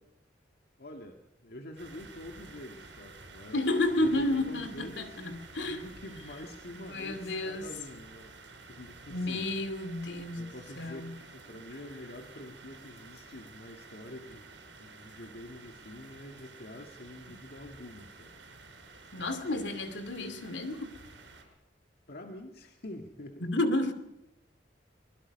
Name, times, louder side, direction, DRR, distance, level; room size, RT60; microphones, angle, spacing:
voice 1, 0.8-3.6 4.0-8.4 8.7-9.5 10.4-14.5 14.8-18.3 22.1-23.4, left 1 dB, 55° left, 4 dB, 1.9 m, -46 dB
sound 1, 1.8-21.4, right 3 dB, 70° right, 6.1 m, -51 dB
voice 2, 3.5-5.8 6.9-7.7 9.1-10.5 10.8-11.2 19.1-21.0 23.4-23.9, left 2 dB, 75° left, 9 dB, 2.6 m, -31 dB
24.5 x 22.0 x 5.4 m, 0.93 s
head